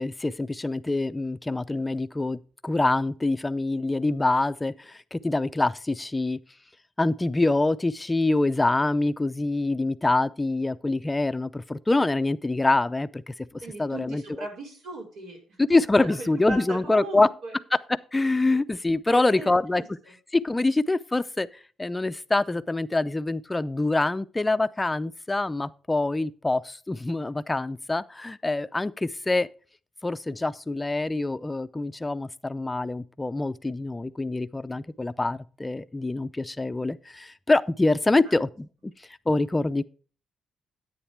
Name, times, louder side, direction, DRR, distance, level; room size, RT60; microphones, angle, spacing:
voice 1, 0.0-6.4 7.0-13.3 13.8-14.5 15.6-17.3 18.1-19.8 20.3-21.5 21.8-29.5 30.0-38.9 39.3-39.8, left 2 dB, 15° left, 0.5 m, -25 dB
voice 2, 13.6-15.6 16.0-17.5 19.1-19.9 38.2-38.4, right 2 dB, 80° right, 4.8 m, -38 dB
10.0 x 8.7 x 3.4 m
cardioid pair, 90°, 0 cm